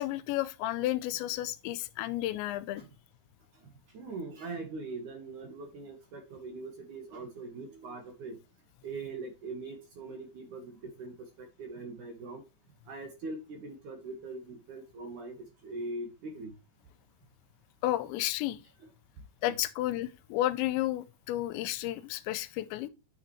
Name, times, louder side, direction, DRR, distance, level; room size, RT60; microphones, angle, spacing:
voice 1, 0.0-2.8 17.8-18.6 19.4-22.9, left 15 dB, 85° left, 2.9 m, -32 dB
voice 2, 3.9-8.4 8.8-12.4 12.9-15.4 15.6-16.5 19.4-19.6, right 3 dB, 60° right, 2.3 m, -41 dB
9.9 x 6.0 x 3.1 m
omnidirectional pair, 5.2 m